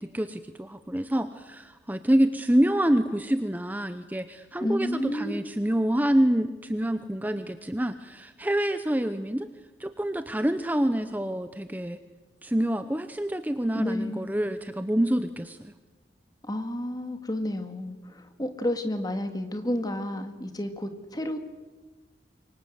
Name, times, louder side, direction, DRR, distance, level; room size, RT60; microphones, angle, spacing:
voice 1, 0.0-9.5 9.8-12.0 12.4-15.7, right 1 dB, 10° right, 10 dB, 0.8 m, -27 dB
voice 2, 4.6-5.5 13.7-14.3 16.4-21.4, left 1 dB, 20° left, 7 dB, 2.1 m, -31 dB
27.0 x 24.0 x 8.1 m, 1.3 s
head